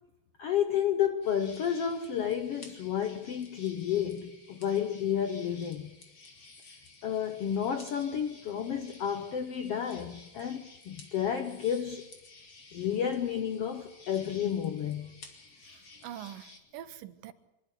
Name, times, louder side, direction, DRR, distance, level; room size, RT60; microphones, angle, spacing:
voice 1, 0.4-5.9 7.0-12.0 12.7-15.1, left 9 dB, 70° left, 1.4 m, -31 dB
sound 1, 1.2-16.6, left 3 dB, 35° left, 3.1 m, -54 dB
voice 2, 15.7-17.3, right 11 dB, 80° right, 2.8 m, -44 dB
26.0 x 11.5 x 9.8 m
omnidirectional pair, 4.0 m